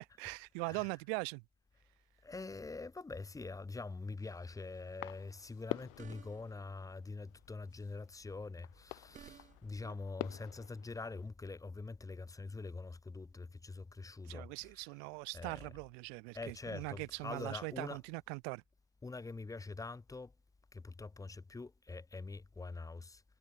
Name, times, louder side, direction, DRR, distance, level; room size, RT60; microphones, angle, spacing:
voice 1, 0.0-1.4 14.2-18.6, right 39 dB, 55° right, 0.7 m, -41 dB
voice 2, 2.2-14.5 15.3-15.7 16.3-18.0 19.0-20.3 20.7-23.2, left 3 dB, 10° left, 3.6 m, -45 dB
sound 1, 4.2-11.2, left 25 dB, 70° left, 2.2 m, -49 dB
sound 2, 5.7-6.7 8.7-9.8, right 8 dB, 20° right, 1.4 m, -57 dB
cardioid pair, 170°, 39 cm